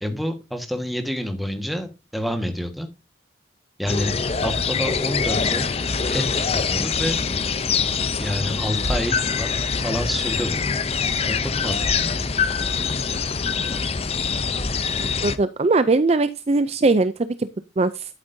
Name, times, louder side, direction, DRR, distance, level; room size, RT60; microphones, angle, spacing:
voice 1, 0.0-2.9 3.8-4.1 4.4-5.7 6.1-7.2 8.1-9.5 9.8-10.6 11.3-12.1, equal, ahead, 5 dB, 1.5 m, -28 dB
sound 1, 3.9-15.4, left 5 dB, 30° left, 0.6 m, -24 dB
sound 2, 8.8-9.2 10.7-10.8 11.8-12.2 12.7-12.8 13.4-13.5 14.6-14.9, equal, 70° left, 3.7 m, -32 dB
voice 2, 15.2-17.1 17.4-17.5 17.8-18.1, right 3 dB, 35° right, 13 dB, 0.4 m, -20 dB
11.5 x 8.8 x 2.7 m, 0.26 s
head